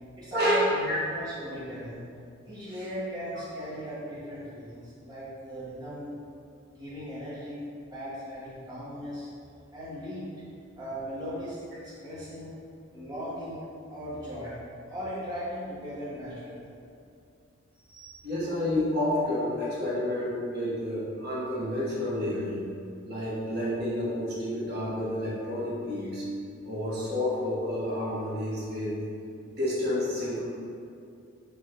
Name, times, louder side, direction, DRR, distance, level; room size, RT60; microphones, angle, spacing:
voice 1, 0.2-2.0 2.5-6.1 6.7-7.6 7.9-9.3 9.7-10.3 10.8-12.5 12.9-14.5 14.9-16.7, equal, 20° right, -11 dB, 1.0 m, -38 dB
voice 2, 17.9-22.7 23.0-26.3 26.6-28.9 29.4-30.4, left 1 dB, 50° right, -8 dB, 1.1 m, -30 dB
4.9 x 2.5 x 4.3 m, 2.4 s
head